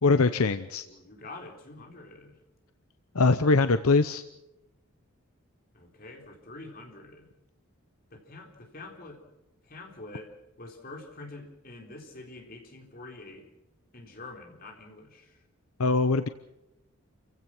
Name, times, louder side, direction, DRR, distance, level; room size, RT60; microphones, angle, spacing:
voice 1, 0.0-0.9 3.1-4.2 15.8-16.3, left 3 dB, 75° left, 11 dB, 0.8 m, -22 dB
voice 2, 0.8-2.4 5.7-7.3 8.1-9.2 9.6-13.5 13.9-15.4, left 2 dB, 40° left, 1 dB, 4.0 m, -46 dB
28.0 x 16.0 x 6.2 m, 0.91 s
head